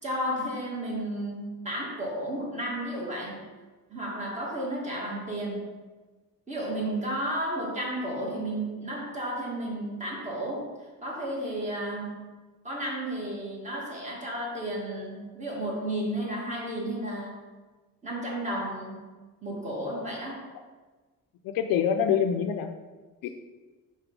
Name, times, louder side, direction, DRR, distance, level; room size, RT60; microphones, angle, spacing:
voice 1, 0.0-3.5 3.9-5.7 6.5-10.7 11.0-12.3 12.6-17.4 18.0-19.1 19.4-20.4, right 1 dB, 20° right, -3 dB, 1.6 m, -33 dB
voice 2, 21.4-22.7 23.2-23.3, left 8 dB, 80° left, 7 dB, 0.5 m, -25 dB
4.6 x 4.4 x 5.1 m, 1.3 s
cardioid pair, 140°, 34 cm